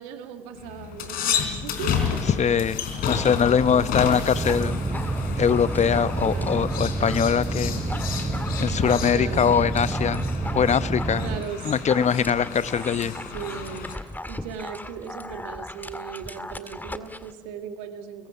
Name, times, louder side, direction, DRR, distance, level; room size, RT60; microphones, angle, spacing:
voice 1, 0.0-2.2 3.7-4.7 6.2-6.6 9.1-9.5 11.2-12.1 13.3-13.9 14.3-18.3, right 7 dB, 80° right, 7 dB, 2.0 m, -38 dB
sound 1, 0.6-13.9, left 7 dB, 70° left, 3.8 m, -31 dB
voice 2, 2.4-4.8 5.4-7.8 8.6-10.2 10.5-11.3 11.6-13.1, left 7 dB, 45° left, 15 dB, 1.0 m, -22 dB
Dog, 4.3-7.3 7.6-17.3, left 1 dB, 10° left, 2.0 m, -39 dB
sound 2, 4.3-11.4, right 2 dB, 30° right, 3.5 m, -28 dB
30.0 x 22.5 x 7.1 m, 1.3 s
hypercardioid pair, 45°, 16 cm